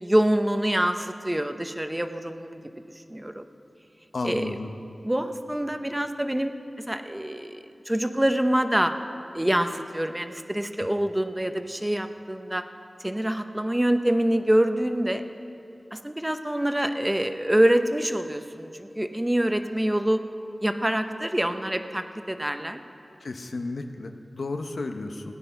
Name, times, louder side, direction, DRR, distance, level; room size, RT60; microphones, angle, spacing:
voice 1, 0.0-2.6 3.1-3.4 4.2-4.6 5.0-8.9 9.3-12.7 13.0-15.2 15.9-20.2 20.6-22.8, right 1 dB, 15° right, 8 dB, 0.7 m, -25 dB
voice 2, 4.1-4.7 23.2-25.2, left 3 dB, 85° left, 6 dB, 0.8 m, -33 dB
17.0 x 9.8 x 5.7 m, 2.6 s
wide cardioid pair, 85°, 0 cm